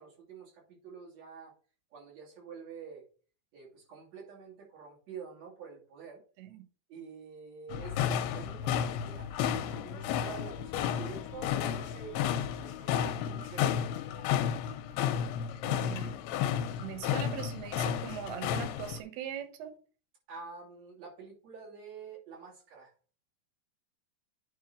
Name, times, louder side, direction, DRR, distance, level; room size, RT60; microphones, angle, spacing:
voice 1, 0.0-1.5 1.9-3.0 3.5-6.2 6.9-12.7 13.0-13.8 20.3-22.9, right 5 dB, 45° right, 3.5 m, -47 dB
sound 1, 7.7-19.0, left 9 dB, 90° left, 2.6 m, -32 dB
voice 2, 15.7-16.1 16.8-19.8, right 9 dB, 85° right, 3.1 m, -41 dB
9.7 x 3.7 x 4.8 m
omnidirectional pair, 4.5 m